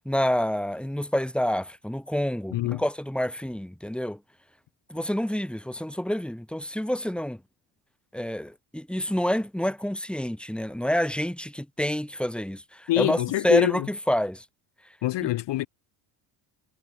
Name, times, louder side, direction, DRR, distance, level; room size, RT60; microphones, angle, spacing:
voice 1, 0.0-4.2 4.9-7.4 8.1-14.4 15.2-15.3, equal, ahead, 4.9 m, -28 dB
voice 2, 2.5-2.8 12.9-13.9 15.0-15.7, left 16 dB, 60° left, 1.2 m, -25 dB
cardioid pair, 125°, 49 cm